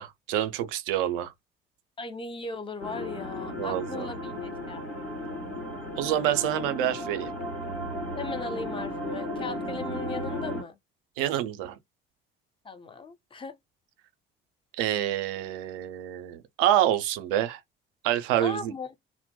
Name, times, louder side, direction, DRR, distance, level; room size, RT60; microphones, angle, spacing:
voice 1, 0.0-1.3 3.6-4.1 6.0-7.3 11.2-11.8 14.8-17.6 18.0-18.7, right 12 dB, 65° right, 0.5 m, -27 dB
voice 2, 2.0-4.8 8.2-10.8 12.6-13.6 18.4-18.9, left 4 dB, 15° left, 0.5 m, -37 dB
sound 1, 2.8-10.6, left 1 dB, 90° left, 1.0 m, -35 dB
2.1 x 2.1 x 2.8 m
figure-of-eight pair, 50°, 30 cm